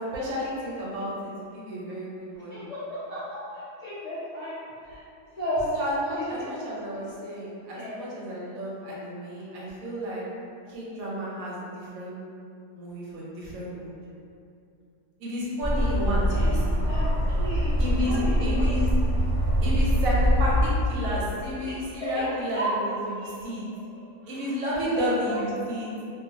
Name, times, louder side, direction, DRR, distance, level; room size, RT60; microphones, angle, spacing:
voice 1, 0.1-2.5 5.7-10.2 10.7-12.2 12.7-13.9 15.2-16.8 17.8-18.9 19.6-23.6 24.3-25.9, equal, 70° right, -6 dB, 0.9 m, -31 dB
voice 2, 2.3-5.0 5.4-5.7 6.1-6.5 6.9-7.0 7.7-8.0 16.3-16.5 16.8-19.3 21.6-22.7 23.1-23.3 24.2-24.5 24.8-25.4 25.7-25.9, equal, 70° left, -15 dB, 0.3 m, -35 dB
sound 1, 15.6-20.7, equal, 5° left, 0.9 m, -23 dB
2.4 x 2.3 x 2.5 m, 2.5 s
omnidirectional pair, 1.6 m